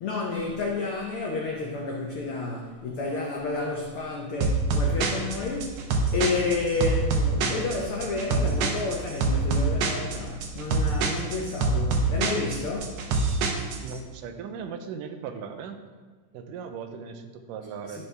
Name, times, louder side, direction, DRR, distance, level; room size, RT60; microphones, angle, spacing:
voice 1, 0.0-5.7 6.1-13.0 17.9-18.1, left 3 dB, 90° left, -1 dB, 1.2 m, -30 dB
sound 1, 4.4-13.9, right 3 dB, 70° right, 1.6 m, -25 dB
voice 2, 13.8-15.8 16.3-18.1, right 6 dB, 90° right, 7 dB, 2.3 m, -38 dB
12.0 x 5.7 x 3.3 m, 1.4 s
omnidirectional pair, 3.7 m